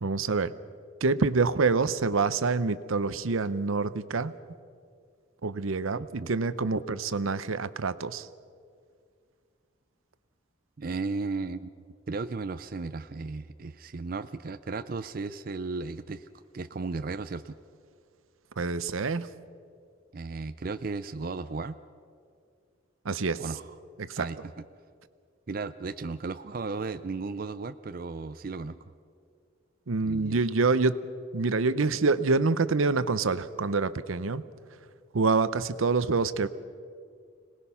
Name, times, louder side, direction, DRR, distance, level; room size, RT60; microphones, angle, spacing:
voice 1, 0.0-0.5 1.0-4.3 5.4-8.3 18.6-19.3 23.0-23.4 24.1-24.2 29.9-31.0 31.3-34.4 35.1-36.5, right 4 dB, 80° right, 14 dB, 0.7 m, -26 dB
voice 2, 5.9-6.3 10.8-16.3 16.5-17.6 20.1-21.8 23.4-23.7 24.2-24.6 25.5-28.8 30.0-30.4, right 3 dB, 45° right, 10 dB, 0.4 m, -35 dB
26.0 x 19.0 x 5.7 m, 2.2 s
head